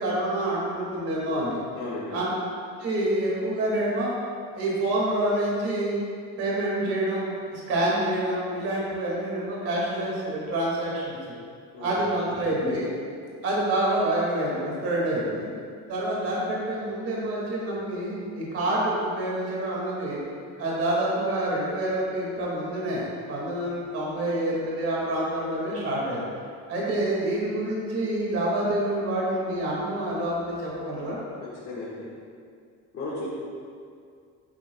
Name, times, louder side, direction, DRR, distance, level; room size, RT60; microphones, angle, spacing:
voice 1, 0.0-1.6 2.1-2.3 2.8-4.1 4.5-6.0 6.4-11.1 11.8-12.9 13.4-15.5 15.9-20.2 20.6-26.3 26.7-31.2, right 1 dB, 45° right, -5 dB, 2.3 m, -27 dB
voice 2, 1.7-2.2 11.7-11.9 31.6-32.1 32.9-33.3, left 2 dB, 40° left, -10 dB, 1.9 m, -34 dB
11.0 x 8.6 x 2.4 m, 2.2 s
cardioid pair, 175°, 34 cm